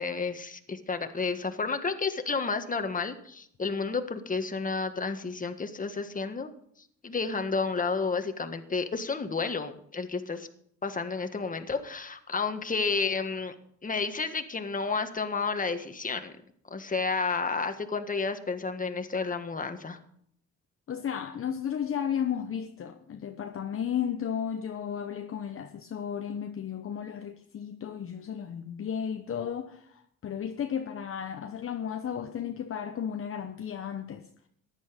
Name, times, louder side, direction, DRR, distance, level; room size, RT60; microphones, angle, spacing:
voice 1, 0.0-6.5 7.0-10.5 10.8-13.5 13.8-16.3 16.7-20.0, left 4 dB, 25° left, 1.6 m, -31 dB
voice 2, 20.9-34.2, left 8 dB, 45° left, 1.0 m, -34 dB
14.5 x 10.5 x 5.2 m
cardioid pair, 90°, 30 cm